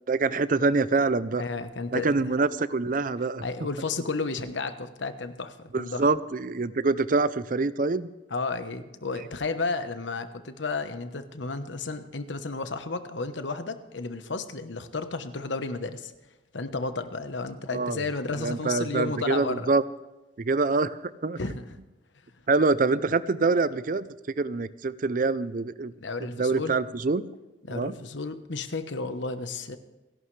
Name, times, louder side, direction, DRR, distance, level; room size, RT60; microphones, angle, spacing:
voice 1, 0.1-1.4 1.9-3.4 5.7-8.1 17.7-18.0 18.4-19.8 20.4-21.4 22.5-24.1 24.4-25.9 26.2-27.2 27.7-28.0, right 3 dB, 45° right, 16 dB, 0.5 m, -25 dB
voice 2, 1.3-2.1 3.4-6.1 8.3-16.1 16.5-19.7 21.4-21.6 26.0-26.8 27.6-29.8, left 3 dB, 85° left, 9 dB, 1.1 m, -32 dB
29.5 x 11.5 x 3.3 m, 1.0 s
head